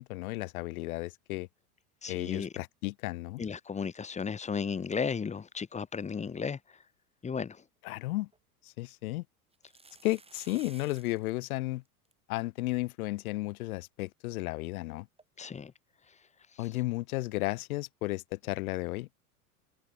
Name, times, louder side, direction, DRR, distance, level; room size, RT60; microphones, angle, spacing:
voice 1, 0.0-1.5 2.1-3.4 7.8-8.3 8.6-9.2 10.0-11.8 12.3-15.1 16.6-19.2, left 19 dB, 65° left, 1.0 m, -34 dB
voice 2, 2.0-2.5 3.4-6.6 7.2-7.6 15.4-15.7, left 6 dB, 15° left, 1.1 m, -34 dB
sound 1, 7.9-8.0 8.3-8.4 9.5-11.3 11.6-11.7 11.9-12.1 12.7-12.8 13.1-13.2 15.2-15.3, right 3 dB, 10° right, 7.3 m, -55 dB
hypercardioid pair, 95°, 47 cm